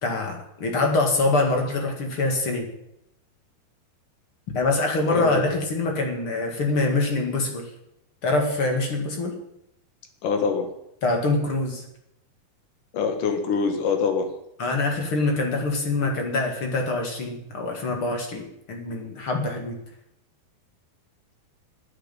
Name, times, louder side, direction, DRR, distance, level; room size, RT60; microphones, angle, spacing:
voice 1, 0.0-2.7 4.5-7.7 8.2-9.4 11.0-11.8 14.6-19.8, left 2 dB, 40° left, 2 dB, 2.4 m, -24 dB
voice 2, 5.1-5.5 10.2-10.7 12.9-14.3, left 5 dB, 65° left, 5 dB, 3.1 m, -24 dB
9.9 x 9.2 x 8.9 m, 0.81 s
omnidirectional pair, 4.3 m